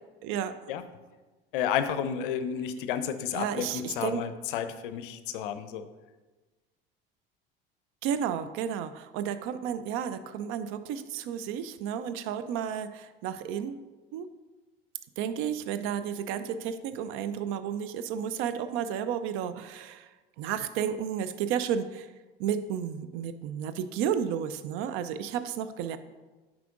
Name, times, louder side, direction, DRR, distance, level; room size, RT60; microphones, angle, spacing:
voice 1, 0.2-0.6 3.3-4.3 8.0-13.8 14.1-14.3 15.2-20.1 20.4-22.1 22.4-26.0, right 8 dB, 45° right, 12 dB, 0.4 m, -32 dB
voice 2, 1.5-5.9, left 8 dB, 65° left, 11 dB, 0.5 m, -31 dB
9.0 x 4.7 x 2.5 m, 1.2 s
figure-of-eight pair, 65°, 29 cm